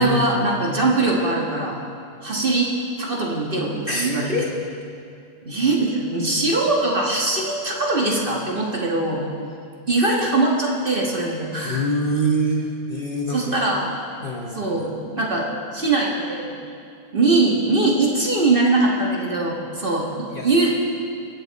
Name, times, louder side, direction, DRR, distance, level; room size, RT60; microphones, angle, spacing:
voice 1, 0.0-1.8 2.2-2.7 3.0-4.3 5.4-9.2 9.9-11.9 13.3-13.9 14.5-16.5 17.1-20.7, right 2 dB, 30° right, -2 dB, 1.3 m, -21 dB
voice 2, 3.9-4.5 11.6-13.5 14.2-14.7 20.3-20.7, equal, 40° left, -1 dB, 0.7 m, -25 dB
22.0 x 8.0 x 4.1 m, 2.4 s
omnidirectional pair, 2.3 m